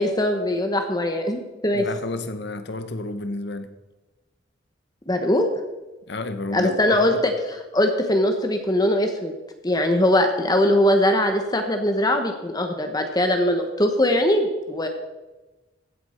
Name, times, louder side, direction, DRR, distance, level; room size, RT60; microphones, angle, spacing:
voice 1, 0.0-1.8 5.1-5.5 6.5-9.3 9.6-14.9, left 1 dB, 20° left, 1.0 m, -21 dB
voice 2, 1.7-3.7 6.1-7.2, left 2 dB, 65° left, 0.9 m, -31 dB
15.5 x 8.1 x 4.3 m
head